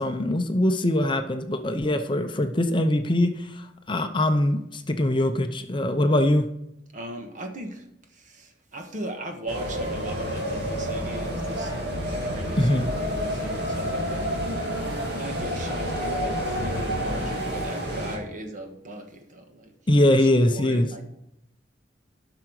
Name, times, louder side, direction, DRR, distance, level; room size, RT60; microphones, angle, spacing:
voice 1, 0.0-6.5 12.6-12.9 19.9-20.9, left 1 dB, 25° left, 7 dB, 0.6 m, -22 dB
voice 2, 6.9-7.8 8.1-14.3 15.2-21.0, right 1 dB, 45° right, 4 dB, 1.4 m, -38 dB
sound 1, 9.5-18.2, equal, 65° right, 2.1 m, -29 dB
11.5 x 6.0 x 4.7 m, 0.81 s
head